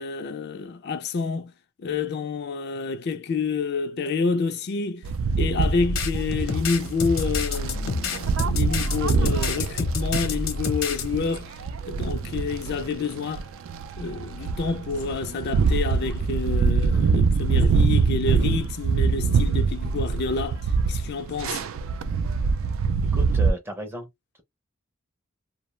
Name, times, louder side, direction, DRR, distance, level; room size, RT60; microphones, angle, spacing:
voice 1, 0.0-1.5 1.8-5.1 5.4-11.5 11.8-13.5 14.0-20.6 20.9-21.6, left 4 dB, 50° left, 0.3 m, -28 dB
sound 1, 5.0-23.5, right 5 dB, 70° right, 0.3 m, -25 dB
sound 2, 5.6-11.0, left 4 dB, 70° left, 0.8 m, -28 dB
voice 2, 23.1-24.1, equal, 10° right, 0.5 m, -34 dB
2.3 x 2.1 x 3.0 m
head